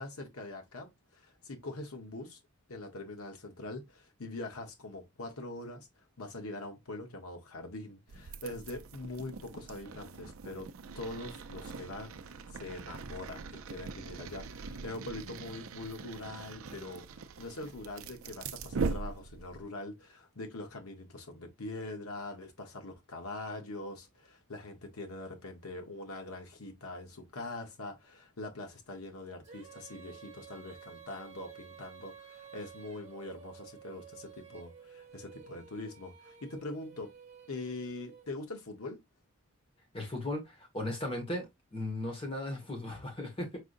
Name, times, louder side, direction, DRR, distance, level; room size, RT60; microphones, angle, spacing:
voice 1, 0.0-2.4 2.7-10.7 11.0-12.1 12.5-37.1 37.5-39.0, left 2 dB, 90° left, 1.1 m, -43 dB
sound 1, 8.1-19.7, right 4 dB, 70° right, 0.5 m, -41 dB
Female singing, 29.4-38.6, right 7 dB, 30° right, 1.2 m, -52 dB
voice 2, 39.9-43.6, left 1 dB, 25° left, 1.8 m, -37 dB
4.8 x 3.8 x 2.6 m
head